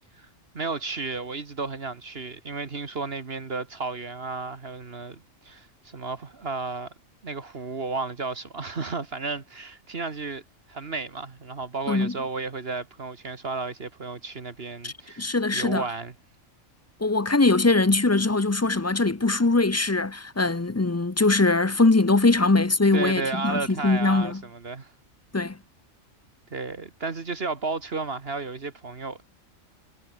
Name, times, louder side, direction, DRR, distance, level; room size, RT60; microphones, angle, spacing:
voice 1, 0.5-6.9 7.2-10.4 10.7-16.1 22.9-24.9 26.5-29.3, right 3 dB, 45° right, 1.8 m, -33 dB
voice 2, 14.8-15.8 17.0-24.4 25.3-25.6, left 3 dB, 20° left, 0.5 m, -22 dB
omnidirectional pair, 1.4 m